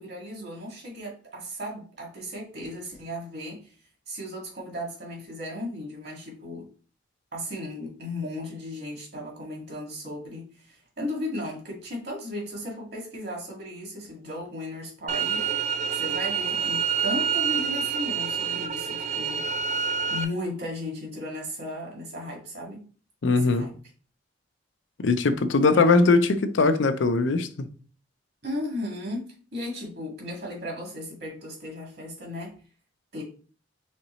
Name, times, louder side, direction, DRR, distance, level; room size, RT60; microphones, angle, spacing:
voice 1, 0.0-3.7 4.1-6.7 7.3-19.4 20.1-22.8 23.3-23.7 25.6-26.2 28.4-29.2 29.5-32.5 33.1-33.2, left 1 dB, 60° right, 1.9 m, -36 dB
sound 1, 15.1-20.2, right 7 dB, 40° right, 0.4 m, -27 dB
voice 2, 23.2-23.7 25.0-27.7, left 3 dB, 80° left, 0.5 m, -21 dB
4.3 x 3.8 x 3.0 m
head